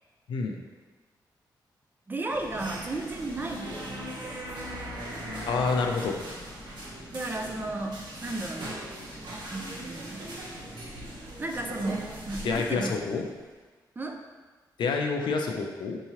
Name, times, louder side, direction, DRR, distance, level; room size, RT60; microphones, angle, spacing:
voice 1, 2.1-4.4 7.1-8.7 9.5-10.3 11.4-12.9 14.0-14.2, right 2 dB, 25° right, 3 dB, 0.4 m, -34 dB
sound 1, 2.3-13.4, right 1 dB, 85° right, 0.9 m, -41 dB
sound 2, 3.3-6.7 9.3-9.4, equal, 65° right, 0.7 m, -40 dB
voice 2, 5.4-6.2 12.4-13.3 14.8-16.0, left 4 dB, 85° left, 2 dB, 0.4 m, -28 dB
4.6 x 2.9 x 2.8 m, 1.3 s
cardioid pair, 95°, 8 cm